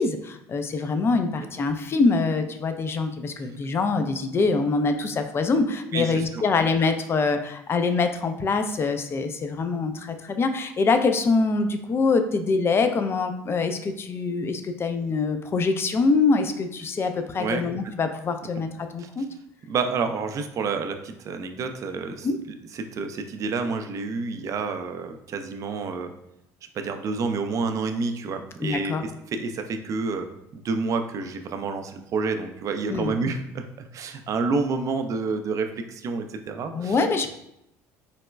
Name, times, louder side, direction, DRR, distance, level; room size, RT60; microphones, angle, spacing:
voice 1, 0.0-19.3 22.2-22.4 28.6-29.0 32.9-33.1 36.7-37.3, left 4 dB, 30° left, 7 dB, 0.4 m, -24 dB
voice 2, 5.9-6.4 17.4-17.6 19.0-19.1 19.7-22.3 22.7-26.1 26.7-37.0, right 4 dB, 45° right, 7 dB, 0.4 m, -29 dB
3.9 x 2.1 x 2.2 m, 0.81 s
supercardioid pair, 75°, 8 cm